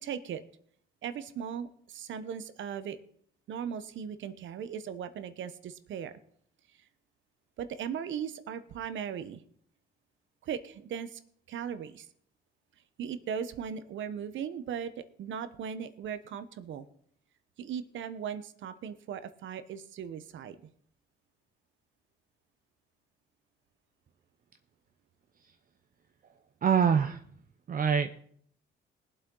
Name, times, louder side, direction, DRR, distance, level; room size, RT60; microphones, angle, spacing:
voice 1, 0.0-0.4 1.0-3.0 3.5-6.1 7.6-9.4 10.4-11.2 11.5-12.1 13.0-16.9 17.6-20.6, right 8 dB, 75° right, 12 dB, 1.0 m, -38 dB
voice 2, 26.6-27.2 27.7-28.1, right 7 dB, 45° right, 7 dB, 0.7 m, -24 dB
20.5 x 7.8 x 3.9 m, 0.63 s
cardioid pair, 90°, 20 cm